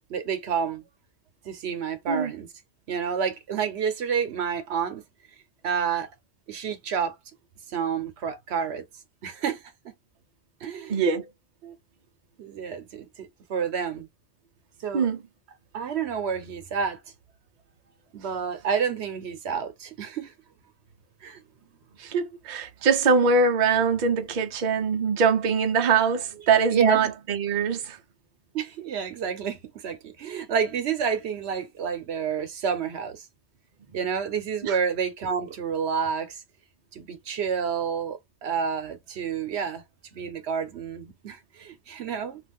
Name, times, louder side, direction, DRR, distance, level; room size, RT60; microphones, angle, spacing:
voice 1, 0.1-0.9 1.4-2.5 2.9-5.0 5.6-6.1 6.5-7.2 7.7-8.8 9.2-9.6 10.6-11.0 11.6-11.8 12.4-14.1 14.8-15.1 15.7-17.0 18.1-20.3 21.2-21.4 26.7-27.1 28.5-33.2 33.9-36.4 36.9-39.8 40.1-42.4, right 7 dB, 80° right, 1.0 m, -29 dB
voice 2, 10.9-11.2 14.9-15.2 22.0-28.0 34.6-34.8, right 5 dB, 50° right, 0.7 m, -23 dB
2.5 x 2.4 x 3.5 m
omnidirectional pair, 1.1 m